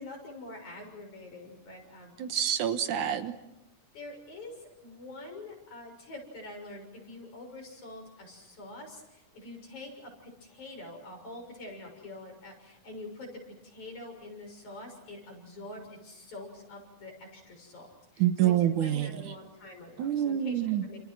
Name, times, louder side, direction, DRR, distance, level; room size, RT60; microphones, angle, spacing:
voice 1, 0.0-2.2 3.9-21.0, left 2 dB, 60° left, 2 dB, 8.1 m, -45 dB
voice 2, 2.2-3.3 18.2-19.3 20.0-20.8, right 10 dB, 70° right, 9 dB, 2.7 m, -27 dB
29.5 x 28.0 x 6.3 m, 0.89 s
omnidirectional pair, 3.8 m